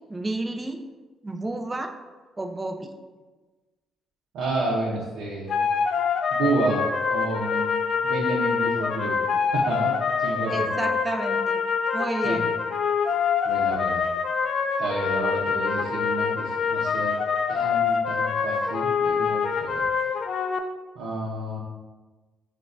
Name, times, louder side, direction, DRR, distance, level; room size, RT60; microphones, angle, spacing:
voice 1, 0.1-0.8 1.2-1.9 2.4-2.9 10.5-11.7 11.9-12.5, right 2 dB, 20° right, 3 dB, 0.4 m, -31 dB
voice 2, 4.3-5.6 6.3-7.7 8.0-9.2 9.5-10.9 12.2-12.5 13.4-14.0 14.8-17.1 17.5-19.9 21.0-21.6, right 2 dB, 85° right, -5 dB, 0.6 m, -30 dB
sound 1, 5.5-20.6, left 6 dB, 60° left, 0.3 m, -25 dB
6.3 x 2.2 x 2.5 m, 1.3 s
cardioid pair, 90°, 0 cm